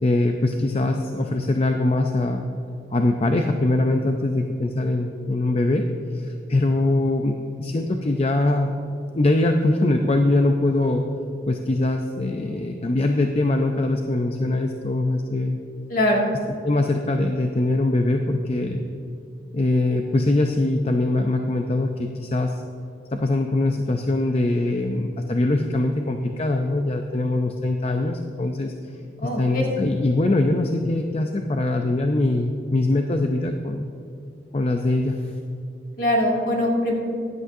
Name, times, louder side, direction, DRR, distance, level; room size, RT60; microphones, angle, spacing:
voice 1, 0.0-2.4 2.9-5.8 6.1-8.7 9.1-11.1 11.5-15.6 16.6-18.8 19.5-22.6 23.1-28.7 29.2-34.0 34.5-35.2, left 2 dB, 35° left, 4 dB, 0.5 m, -22 dB
voice 2, 15.9-16.3 29.2-29.6 36.0-36.9, left 1 dB, 50° left, -2 dB, 2.2 m, -22 dB
15.5 x 11.0 x 2.7 m, 2.6 s
head